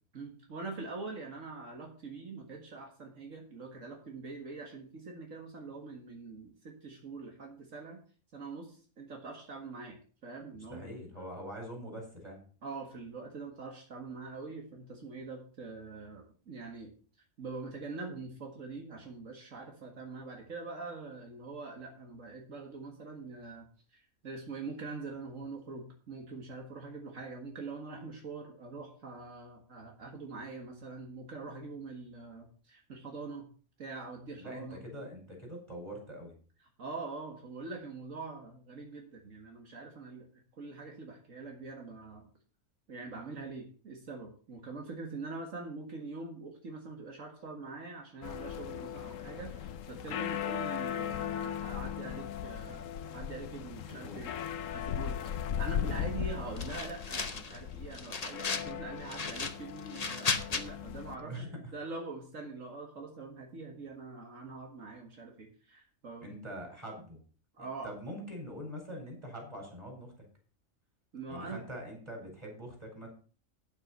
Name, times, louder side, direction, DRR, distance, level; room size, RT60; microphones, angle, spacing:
voice 1, 0.1-8.0 8.3-10.9 12.6-16.9 17.4-23.7 23.9-33.5 33.8-34.8 36.8-42.3 42.9-52.9 53.1-66.3 67.6-67.9 71.1-71.6, right 3 dB, 75° right, 2 dB, 2.1 m, -44 dB
voice 2, 10.7-12.4 34.4-36.4 53.9-54.2 55.8-56.1 61.0-61.7 66.2-67.2 67.6-70.1 71.3-73.1, equal, 20° right, 1 dB, 4.6 m, -44 dB
sound 1, 48.2-61.2, left 9 dB, 75° left, 1.1 m, -38 dB
sound 2, 56.6-57.6 57.9-58.7 59.1-60.6, left 4 dB, 35° left, 0.9 m, -35 dB
9.1 x 8.1 x 5.6 m, 0.40 s
omnidirectional pair, 1.4 m